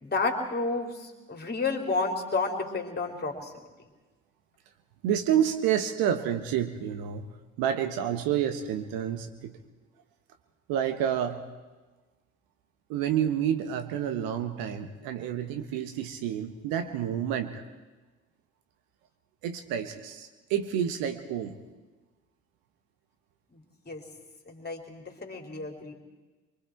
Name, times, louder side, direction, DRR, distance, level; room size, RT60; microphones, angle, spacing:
voice 1, 0.0-3.6 23.5-24.0 24.5-25.9, left 3 dB, 25° left, 3 dB, 3.5 m, -31 dB
voice 2, 5.0-7.3 7.6-9.5 10.7-11.4 12.9-17.6 19.4-21.6, right 9 dB, 55° right, 8 dB, 1.4 m, -29 dB
25.0 x 24.0 x 4.6 m, 1.2 s
figure-of-eight pair, 55°, 41 cm